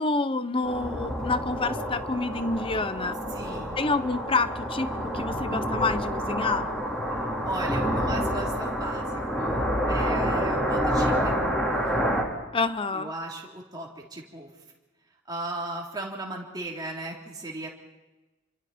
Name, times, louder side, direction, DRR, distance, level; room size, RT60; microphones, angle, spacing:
voice 1, 0.0-3.2 3.8-6.7 12.5-13.1, left 3 dB, 25° left, 12 dB, 0.8 m, -28 dB
sound 1, 0.6-12.2, equal, 5° left, 3.9 m, -28 dB
voice 2, 3.3-3.8 7.2-11.5 12.9-14.5 15.3-17.7, right 2 dB, 20° right, -2 dB, 3.5 m, -36 dB
29.0 x 25.0 x 4.4 m, 1.1 s
head